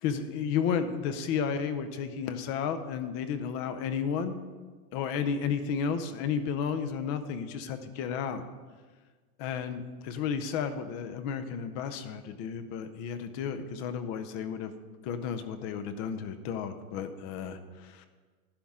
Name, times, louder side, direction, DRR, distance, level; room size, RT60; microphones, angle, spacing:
voice 1, 0.0-4.4 4.9-8.4 9.4-14.7 15.0-18.1, left 7 dB, 35° left, 10 dB, 0.6 m, -32 dB
11.5 x 10.5 x 3.6 m, 1.4 s
supercardioid pair, 155°, 45 cm